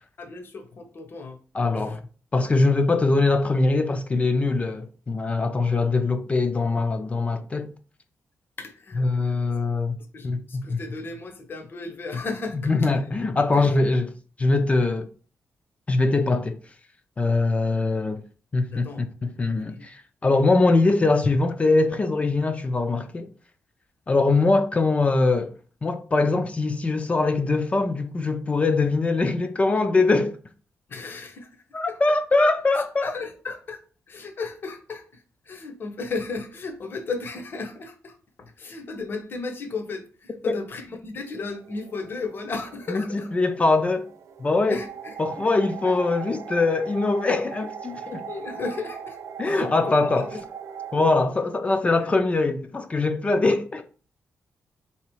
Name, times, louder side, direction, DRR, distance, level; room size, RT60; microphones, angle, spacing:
voice 1, 0.2-1.4 1.7-2.0 8.6-9.3 10.1-12.9 13.5-13.9 18.7-19.1 19.6-19.8 30.9-32.0 32.7-33.8 34.1-43.3 44.7-45.2 45.8-46.0 48.1-49.7 50.2-50.4 52.0-52.1, left 4 dB, 45° left, 0.7 m, -35 dB
voice 2, 1.5-2.0 2.3-7.7 9.0-10.0 10.2-10.4 10.7-10.8 12.5-14.1 14.4-15.1 15.9-16.6 17.2-18.2 18.5-23.3 24.1-25.5 25.8-30.4 31.7-33.1 40.5-40.6 42.9-44.1 44.4-44.8 45.2-48.2 49.4-50.3 50.9-53.8, left 3 dB, 25° left, 0.4 m, -22 dB
sound 1, 41.1-51.2, right 7 dB, 85° right, 0.4 m, -40 dB
3.8 x 2.9 x 4.5 m
wide cardioid pair, 140°, 5 cm